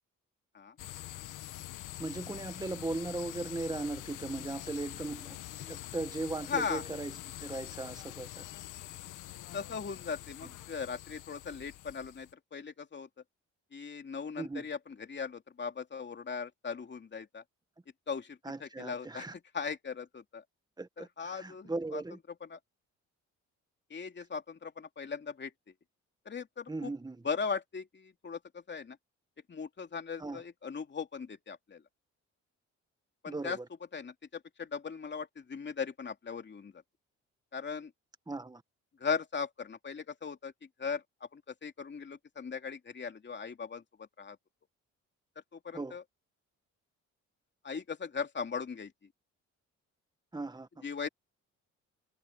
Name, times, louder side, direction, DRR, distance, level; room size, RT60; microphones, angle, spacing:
sound 1, 0.8-12.3, left 15 dB, 85° left, 1.3 m, -45 dB
voice 1, 2.0-7.1 7.4-8.4 14.4-14.6 18.5-19.3 20.8-22.2 26.7-27.2 30.2-30.4 33.3-33.6 38.3-38.6 45.7-46.0 50.3-50.9, right 2 dB, 15° right, 1.7 m, -38 dB
voice 2, 6.5-6.8 9.5-13.1 13.7-17.4 18.1-20.4 21.0-22.0 22.3-22.6 23.9-25.5 26.2-26.9 27.2-29.0 29.5-31.8 33.2-33.6 33.9-36.8 37.5-37.9 39.0-44.4 45.5-46.0 47.6-48.9 50.8-51.1, left 5 dB, 35° left, 2.7 m, -39 dB
cardioid pair, 90°, 30 cm